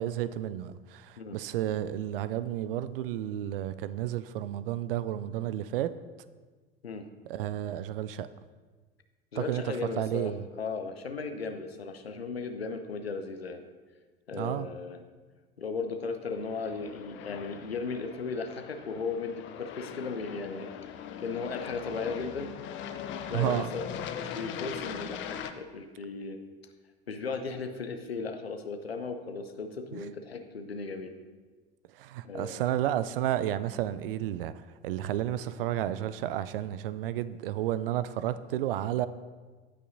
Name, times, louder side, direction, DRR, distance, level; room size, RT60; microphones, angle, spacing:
voice 1, 0.0-5.9 7.3-8.3 9.4-10.4 14.4-14.7 23.3-23.7 29.9-30.0 31.9-34.5 34.8-39.1, right 12 dB, 65° right, 0.5 m, -31 dB
voice 2, 9.3-13.7 14.3-15.0 15.6-20.7 21.2-22.5 23.3-23.8 24.1-26.4 27.1-31.1 32.2-32.8, left 4 dB, 90° left, 0.7 m, -36 dB
Aircraft, 16.3-25.5, left 8 dB, 40° left, 0.6 m, -40 dB
16.0 x 5.5 x 2.7 m
figure-of-eight pair, 70°, 30 cm